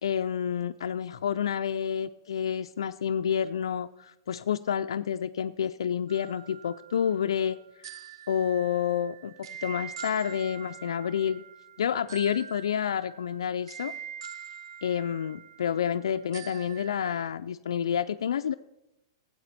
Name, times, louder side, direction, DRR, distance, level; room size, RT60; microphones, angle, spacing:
voice 1, 0.0-8.0 8.3-9.3 9.6-11.4 11.8-13.9 14.8-18.5, left 8 dB, 85° left, 9 dB, 0.3 m, -29 dB
sound 1, 6.1-17.3, right 8 dB, 70° right, 0.5 m, -45 dB
11.0 x 8.1 x 4.1 m, 0.90 s
hypercardioid pair, 135°, 3 cm